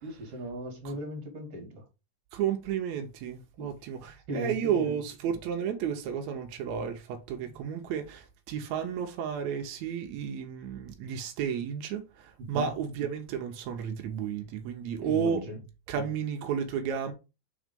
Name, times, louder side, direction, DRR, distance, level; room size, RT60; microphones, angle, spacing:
voice 1, 0.0-1.8 3.6-3.7 4.3-4.9 12.4-12.7 15.0-15.6, right 1 dB, 45° right, 2.5 m, -37 dB
voice 2, 2.3-15.4 15.9-17.1, right 7 dB, 85° right, 1.6 m, -32 dB
6.2 x 3.7 x 5.1 m
omnidirectional pair, 4.2 m